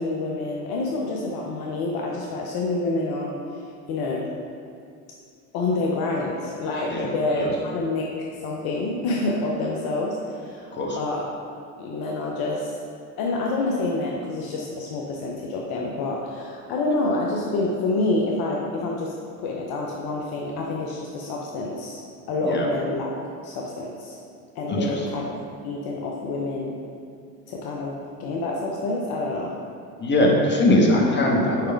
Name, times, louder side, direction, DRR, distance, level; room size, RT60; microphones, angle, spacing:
voice 1, 0.0-3.3 3.9-4.3 5.5-11.3 11.8-12.7 13.2-22.0 22.3-23.2 23.4-24.2 24.5-25.4 25.6-26.8 27.5-29.5, left 2 dB, 50° left, -1 dB, 0.8 m, -27 dB
voice 2, 24.7-25.2 30.0-31.7, left 1 dB, 25° left, -2 dB, 1.2 m, -21 dB
4.9 x 4.7 x 4.6 m, 2.3 s
hypercardioid pair, 80°, 46 cm